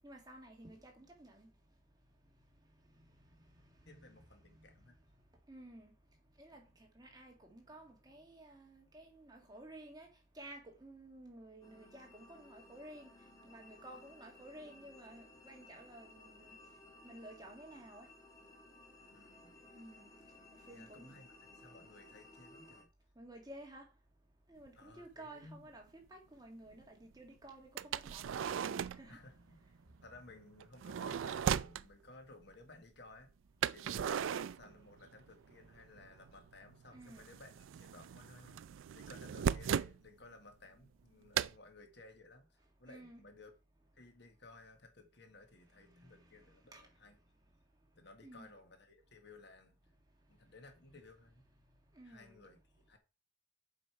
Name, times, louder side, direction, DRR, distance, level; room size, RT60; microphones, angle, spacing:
voice 1, 0.0-1.5 3.9-4.1 5.5-5.9 6.4-10.1 10.3-13.1 13.4-16.6 17.0-18.1 19.7-20.1 20.7-21.1 23.2-23.9 24.5-29.2 34.6-34.7 36.9-37.3 42.9-43.2 45.9-46.5 46.7-46.8 48.2-48.5 51.9-52.4, right 1 dB, 20° right, 1.9 m, -54 dB
voice 2, 3.8-5.0 6.6-6.7 13.9-14.1 19.1-19.6 20.7-22.9 24.7-25.7 29.1-29.6 30.0-33.3 33.7-38.6 38.9-43.5 43.9-47.2 48.0-49.8 50.3-51.4 52.0-53.0, left 2 dB, 55° left, 1.4 m, -58 dB
sound 1, 11.6-22.8, left 2 dB, 15° left, 1.6 m, -59 dB
sound 2, 24.7-24.8 25.4-25.5 27.8-29.1 30.6-31.8 33.6-35.3 35.5-36.4 36.7-40.0 41.3-41.5, right 8 dB, 75° right, 0.3 m, -37 dB
7.7 x 5.3 x 4.7 m
head